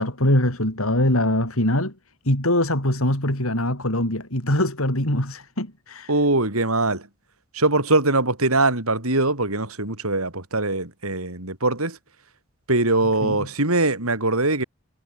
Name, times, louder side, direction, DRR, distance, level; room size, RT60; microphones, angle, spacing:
voice 1, 0.0-1.9 2.2-6.1 13.2-13.5, left 1 dB, 80° left, 8.0 m, -22 dB
voice 2, 6.1-7.1 7.5-12.0 12.7-14.6, right 2 dB, 90° right, 7.0 m, -22 dB
head